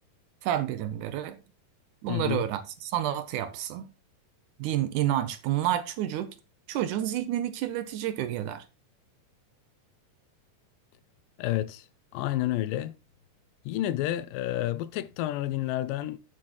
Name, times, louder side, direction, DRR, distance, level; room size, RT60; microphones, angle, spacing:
voice 1, 0.4-1.4 2.0-3.9 4.6-6.3 6.7-8.7, right 12 dB, 75° right, 2.1 m, -29 dB
voice 2, 2.1-2.4 11.4-11.9 12.1-12.9 13.7-16.2, left 14 dB, 85° left, 2.4 m, -30 dB
11.0 x 7.5 x 3.0 m
omnidirectional pair, 3.9 m